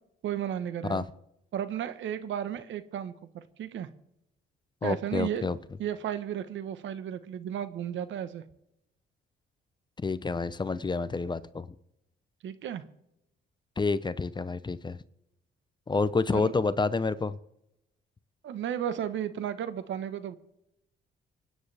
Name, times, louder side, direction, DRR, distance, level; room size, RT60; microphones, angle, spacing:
voice 1, 0.2-1.0 1.5-3.9 4.8-5.5 5.8-8.4 12.4-12.8 16.3-16.5 18.4-20.4, right 9 dB, 75° right, 12 dB, 1.1 m, -34 dB
voice 2, 4.8-5.6 10.0-11.7 13.8-15.0 15.9-17.4, left 4 dB, 20° left, 15 dB, 0.7 m, -28 dB
25.5 x 9.4 x 3.4 m, 0.81 s
cardioid pair, 90°, 20 cm